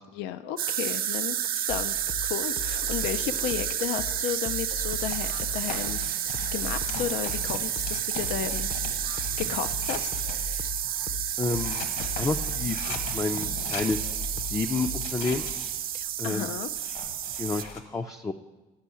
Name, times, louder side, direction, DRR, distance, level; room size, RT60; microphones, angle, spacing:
voice 1, 0.1-6.0 6.5-10.1 15.9-16.7, left 11 dB, 85° left, 12 dB, 0.4 m, -33 dB
sound 1, 0.6-17.6, right 11 dB, 60° right, 0.6 m, -31 dB
sound 2, 1.7-15.2, left 4 dB, 50° left, 0.7 m, -38 dB
sound 3, 4.9-10.8 11.3-17.8, left 4 dB, 65° left, 1.6 m, -41 dB
voice 2, 11.4-11.9 12.2-15.5 16.2-16.5 17.4-18.3, left 3 dB, 20° left, 5 dB, 0.4 m, -30 dB
10.5 x 5.4 x 8.3 m, 1.2 s
cardioid pair, 110°, 17 cm